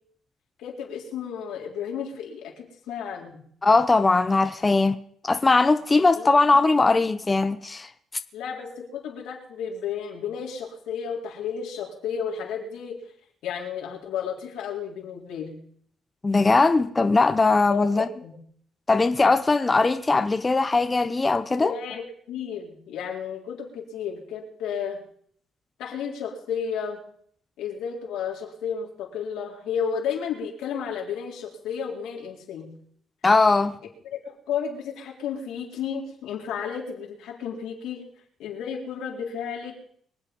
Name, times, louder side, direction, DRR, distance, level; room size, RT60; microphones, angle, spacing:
voice 1, 0.6-3.4 6.1-6.3 8.3-13.0 13.4-15.6 17.7-18.3 21.6-22.0 22.3-25.0 25.8-27.0 27.6-32.7 34.1-38.1 38.4-39.8, left 7 dB, 90° left, 4.0 m, -32 dB
voice 2, 3.6-5.0 5.2-7.9 16.2-18.1 18.9-21.7 33.2-33.8, left 3 dB, 25° left, 0.7 m, -20 dB
24.0 x 8.1 x 5.4 m
cardioid pair, 90°, 0 cm